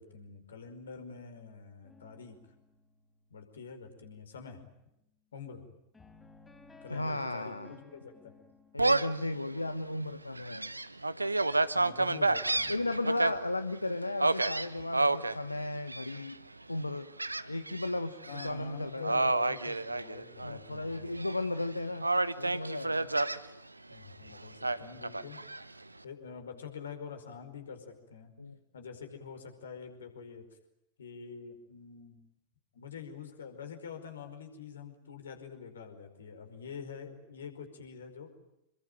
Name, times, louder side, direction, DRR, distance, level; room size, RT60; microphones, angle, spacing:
voice 1, 0.0-2.4 3.3-4.6 5.3-5.6 6.8-8.3 11.7-12.7 14.8-14.9 18.3-21.1 23.9-25.4 26.0-28.3 28.7-30.4 31.0-32.2 32.7-38.3, left 6 dB, 65° left, 6 dB, 5.0 m, -46 dB
sound 1, 1.8-4.1 5.9-9.8 12.5-13.4, left 3 dB, 15° left, 3.9 m, -57 dB
voice 2, 6.9-7.8 8.7-10.7 12.7-16.4 16.7-17.1 17.5-19.3 20.4-22.0 22.4-23.1 28.4-28.6, left 2 dB, 85° left, 11 dB, 1.1 m, -35 dB
Gull seagull, 8.8-9.2 9.7-9.8 10.3-13.3 14.2-15.3 15.9-16.3 17.2-17.9 18.2-18.5 19.0-20.6 20.9-21.6 22.0-23.4 24.6-25.6, right 2 dB, 85° right, 0.9 m, -29 dB
27.5 x 22.5 x 9.1 m, 0.86 s
figure-of-eight pair, 90°, 0 cm